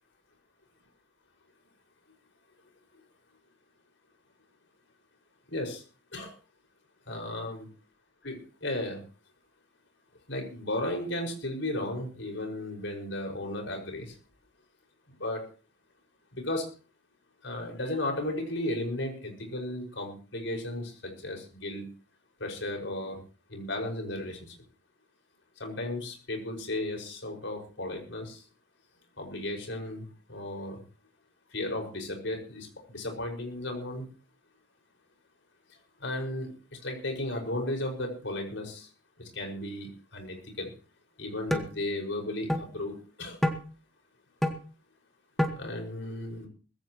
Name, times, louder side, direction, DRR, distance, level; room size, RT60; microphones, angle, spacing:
voice 1, 5.5-5.8 6.1-6.3 7.1-7.7 8.2-8.4 8.6-9.0 10.3-14.1 15.2-15.4 16.3-16.6 17.4-20.9 21.2-21.9 22.4-23.2 23.5-24.4 25.6-28.4 29.2-30.0 30.3-30.8 31.5-34.0 36.0-36.5 36.8-38.9 39.3-40.7 41.2-43.4 45.6-46.5, left 1 dB, 90° left, 2 dB, 5.8 m, -34 dB
sound 1, 41.5-41.7 42.5-42.6 43.4-43.6 44.4-44.6 45.4-45.6, equal, ahead, 1.7 m, -27 dB
20.5 x 16.0 x 3.1 m, 0.36 s
head